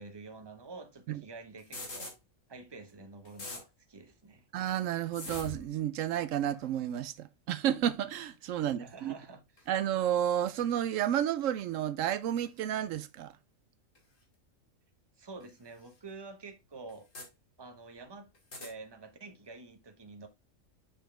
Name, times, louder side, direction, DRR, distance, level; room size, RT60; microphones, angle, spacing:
voice 1, 0.0-2.2 2.5-4.5 8.7-9.7 15.2-17.1 17.6-18.3 18.6-20.3, right 3 dB, 20° right, 0.9 m, -48 dB
sound 1, 1.6-2.1 2.9-3.0 3.2-3.6 5.1-5.7 6.5-6.7 8.1-8.3 9.6-9.8 11.0-11.1 12.5-12.6 14.0-14.1 15.4-15.5 15.9-16.0 16.9-17.3 18.3-18.7, left 2 dB, 80° left, 2.6 m, -43 dB
voice 2, 4.5-9.1 9.7-13.4, right 10 dB, 80° right, 0.9 m, -31 dB
7.0 x 5.7 x 3.3 m
omnidirectional pair, 1.3 m